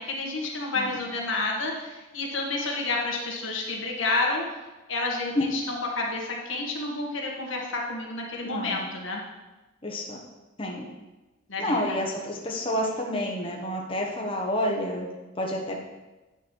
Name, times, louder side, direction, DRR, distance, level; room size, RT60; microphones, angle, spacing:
voice 1, 0.0-4.4 4.9-9.2 11.5-12.0, left 2 dB, 90° left, -1 dB, 1.6 m, -30 dB
voice 2, 8.4-8.8 9.8-10.2 10.6-10.9 11.6-15.1 15.4-15.8, left 1 dB, 30° left, -1 dB, 1.0 m, -29 dB
8.9 x 5.2 x 4.5 m, 1.1 s
head